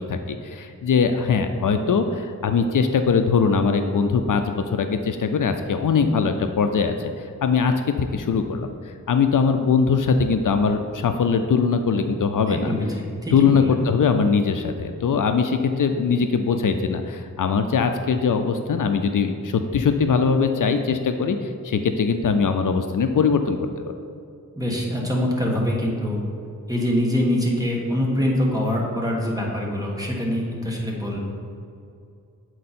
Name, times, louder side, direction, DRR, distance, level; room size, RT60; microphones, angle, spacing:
voice 1, 0.0-8.7 9.1-12.7 13.3-23.9, left 5 dB, 65° left, 7 dB, 0.5 m, -21 dB
voice 2, 12.4-13.7 24.5-26.2 26.7-31.2, left 1 dB, 10° right, -2 dB, 1.4 m, -24 dB
7.6 x 4.6 x 4.2 m, 2.5 s
wide cardioid pair, 80°, 34 cm